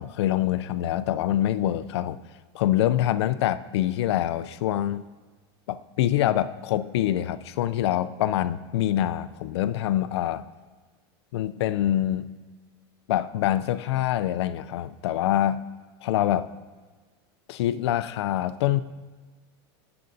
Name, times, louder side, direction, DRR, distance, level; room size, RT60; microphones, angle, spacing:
voice 1, 0.0-2.2 2.5-5.0 5.7-10.4 11.3-12.3 13.1-15.6 16.0-16.5 17.5-18.8, left 12 dB, 75° left, 15 dB, 0.4 m, -25 dB
15.0 x 6.8 x 2.6 m, 1.3 s
supercardioid pair, 175°, 14 cm